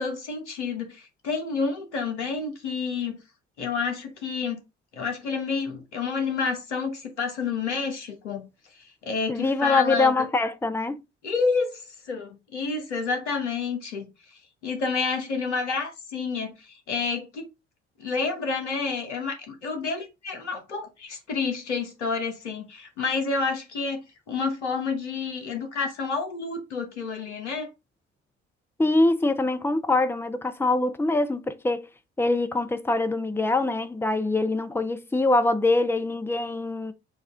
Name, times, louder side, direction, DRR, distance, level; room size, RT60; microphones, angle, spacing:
voice 1, 0.0-3.2 3.6-4.6 4.9-8.5 8.7-10.3 11.2-14.1 14.6-17.5 18.0-27.7, left 4 dB, 85° left, 1.0 m, -29 dB
voice 2, 9.3-11.0 28.8-31.9 32.2-36.9, left 2 dB, 5° left, 0.6 m, -24 dB
6.3 x 2.4 x 3.4 m
figure-of-eight pair, 50°, 34 cm